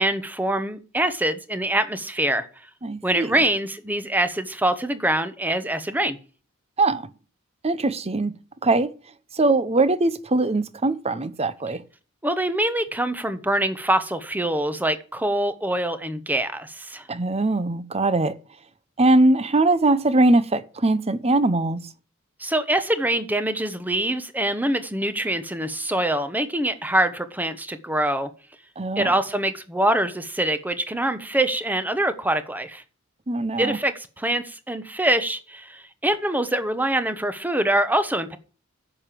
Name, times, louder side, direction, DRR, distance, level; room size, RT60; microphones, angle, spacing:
voice 1, 0.0-2.5 3.0-6.2 12.2-17.0 22.4-28.3 29.0-32.8 33.6-38.4, right 1 dB, 10° right, 1.1 m, -24 dB
voice 2, 2.8-3.3 6.8-7.1 7.6-8.3 8.6-8.9 9.3-11.8 17.1-18.4 19.0-21.8 28.8-29.1 33.3-33.8, right 2 dB, 30° right, 0.8 m, -21 dB
10.5 x 7.0 x 7.4 m
head